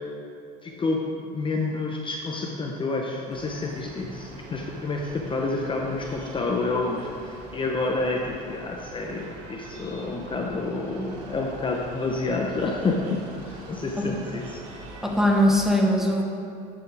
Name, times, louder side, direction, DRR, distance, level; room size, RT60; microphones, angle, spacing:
voice 1, 0.6-14.6, left 3 dB, 25° left, 0 dB, 0.8 m, -29 dB
sound 1, 3.3-15.7, right 2 dB, 85° right, 1.4 m, -44 dB
voice 2, 15.0-16.2, equal, ahead, 0 dB, 1.2 m, -21 dB
10.5 x 6.9 x 3.4 m, 2.5 s
supercardioid pair, 100°, 20 cm